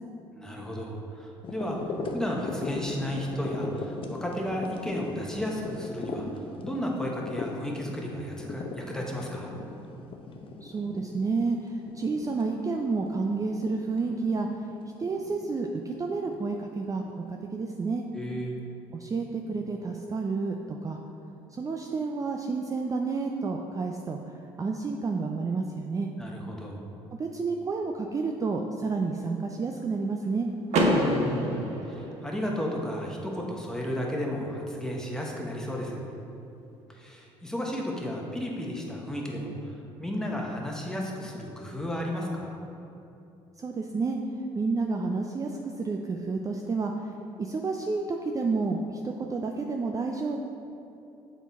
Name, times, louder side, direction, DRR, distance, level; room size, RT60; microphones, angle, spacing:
voice 1, 0.3-1.8 2.1-9.6 18.1-18.6 26.2-26.8 30.9-36.0 36.9-39.7 40.0-42.6, equal, 5° left, -1 dB, 1.3 m, -33 dB
sound 1, 1.4-17.1 17.6-17.7, left 3 dB, 45° left, 0.7 m, -39 dB
voice 2, 10.6-14.5 15.0-18.1 18.9-21.0 21.5-26.1 27.2-30.5 43.6-44.2 44.5-47.1 47.4-50.4, right 4 dB, 25° right, 2 dB, 0.4 m, -30 dB
Car / Door, 30.7-32.6, right 1 dB, 65° right, 0.9 m, -26 dB
7.1 x 3.9 x 4.1 m, 2.8 s
supercardioid pair, 65°, 12 cm